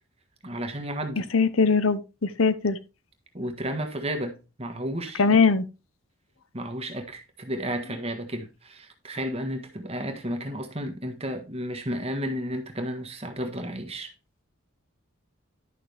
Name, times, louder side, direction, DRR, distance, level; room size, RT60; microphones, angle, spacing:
voice 1, 0.4-1.3 3.3-5.2 6.5-14.1, equal, 30° right, 1.5 m, -32 dB
voice 2, 1.3-2.8 5.2-5.6, left 4 dB, 85° left, 0.9 m, -21 dB
11.5 x 6.2 x 3.4 m
head